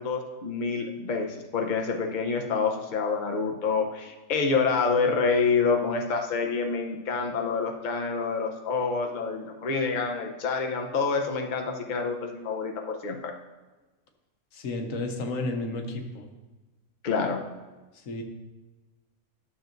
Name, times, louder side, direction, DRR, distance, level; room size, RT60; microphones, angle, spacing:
voice 1, 0.0-13.2 17.0-17.4, left 4 dB, 45° left, 3 dB, 0.8 m, -27 dB
voice 2, 14.5-16.3 17.9-18.2, left 2 dB, 85° left, 4 dB, 1.3 m, -32 dB
11.5 x 6.9 x 2.6 m, 1.2 s
omnidirectional pair, 1.3 m